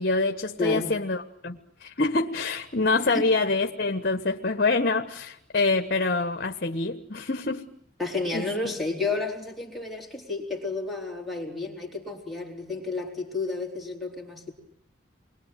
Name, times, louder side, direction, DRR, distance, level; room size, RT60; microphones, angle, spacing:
voice 1, 0.0-7.7 8.3-8.7, left 3 dB, 50° left, 1.3 m, -26 dB
voice 2, 0.6-1.0 2.8-3.3 8.0-14.5, left 3 dB, ahead, 4.2 m, -31 dB
28.5 x 22.5 x 9.1 m
head